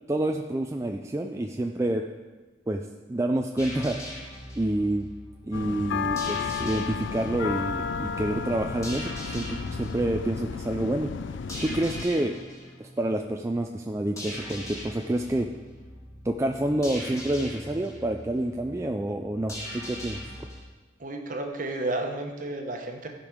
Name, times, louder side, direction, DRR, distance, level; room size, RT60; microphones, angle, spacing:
voice 1, 0.1-2.0 2.7-2.8 3.1-4.0 4.6-5.1 5.5-11.1 11.6-12.3 12.8-15.5 16.2-20.2, right 1 dB, 15° right, 3 dB, 0.4 m, -28 dB
sound 1, 3.6-20.6, equal, 15° left, 2.0 m, -41 dB
sound 2, 5.5-12.1, left 6 dB, 80° left, 0.4 m, -33 dB
voice 2, 21.0-23.1, right 2 dB, 45° right, 3 dB, 1.1 m, -32 dB
14.5 x 5.3 x 5.1 m, 1.3 s
head